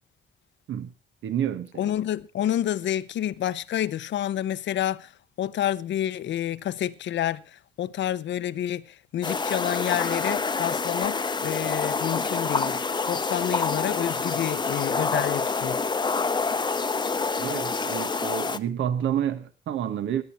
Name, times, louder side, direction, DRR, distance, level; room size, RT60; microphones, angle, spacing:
voice 1, 1.2-1.9 17.4-20.2, right 9 dB, 75° right, 1.3 m, -29 dB
voice 2, 1.8-5.1 5.4-8.8 9.1-12.8 13.1-15.8, left 11 dB, 65° left, 0.8 m, -29 dB
sound 1, 9.2-18.6, left 4 dB, 20° left, 0.8 m, -27 dB
18.0 x 10.5 x 4.3 m
cardioid pair, 90°, 20 cm